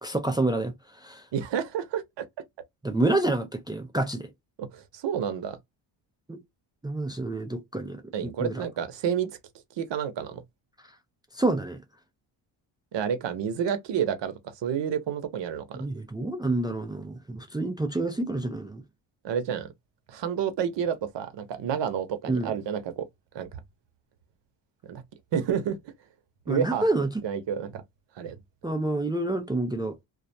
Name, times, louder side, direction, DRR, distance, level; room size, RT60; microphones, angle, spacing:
voice 1, 0.0-1.2 2.8-4.3 6.3-6.4 6.8-8.7 11.3-11.8 15.7-18.8 22.3-22.5 26.5-27.1 28.6-30.0, right 2 dB, 10° right, 0.3 m, -28 dB
voice 2, 1.3-2.2 4.6-5.6 8.1-9.3 9.8-10.4 12.9-15.9 19.2-19.7 20.1-23.1 23.3-23.6 24.9-25.0 25.3-25.8 26.5-27.8 28.2-28.4, right 8 dB, 60° right, 0.8 m, -30 dB
2.4 x 2.2 x 2.6 m
cardioid pair, 100°, 48 cm